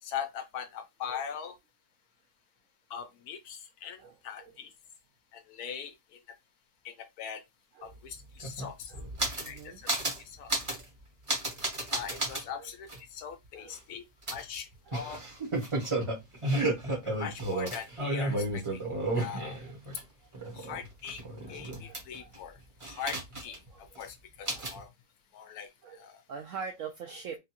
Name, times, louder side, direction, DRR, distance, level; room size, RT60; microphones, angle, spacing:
voice 1, 0.0-1.6 2.9-4.7 5.3-6.2 6.8-7.4 7.8-8.9 9.4-10.7 11.9-14.0 14.3-15.2 17.2-18.8 19.2-19.6 20.5-21.2 21.5-22.6 22.8-23.6 24.0-24.9 25.3-26.2, left 8 dB, 70° left, 1.0 m, -41 dB
voice 2, 4.0-4.5 7.8-7.9 8.9-9.1 9.4-9.8 12.6-12.7 13.6-13.7 14.9-15.2 19.2-19.7 20.4-20.6 21.5-22.3 23.7-23.8 24.5-24.7 25.4-25.5 25.8-26.0 26.3-27.4, right 6 dB, 75° right, 0.7 m, -44 dB
sound 1, 7.9-8.0 8.2-9.6 9.9-10.2 10.5-10.8 11.3-12.4 12.9-13.0 14.3-20.0 20.3-22.4 22.8-23.7 24.0-24.1 24.5-24.8, right 2 dB, 30° right, 0.6 m, -32 dB
3.6 x 2.3 x 2.8 m
omnidirectional pair, 1.8 m